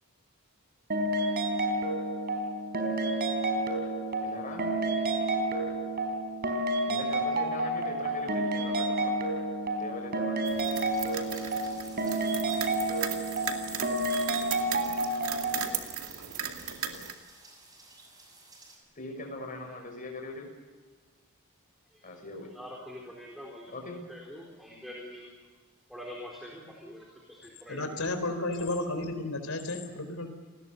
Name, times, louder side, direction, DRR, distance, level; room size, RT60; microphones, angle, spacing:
sound 1, 0.9-15.7, right 2 dB, 45° right, 4.1 m, -30 dB
voice 1, 4.2-4.7 6.9-9.3 9.8-10.6 18.9-20.5 22.0-22.5 23.7-24.0, left 2 dB, 40° left, 3 dB, 6.4 m, -41 dB
sound 2, 10.5-17.1, right 8 dB, 70° right, 2.4 m, -37 dB
sound 3, 10.7-18.8, right 3 dB, 20° right, 7.0 m, -50 dB
voice 2, 21.9-23.7 24.1-25.4 25.9-27.9 28.4-28.6, equal, ahead, -1 dB, 4.1 m, -45 dB
voice 3, 27.7-30.3, left 2 dB, 70° left, 7 dB, 4.2 m, -32 dB
29.5 x 20.0 x 7.0 m, 1.5 s
head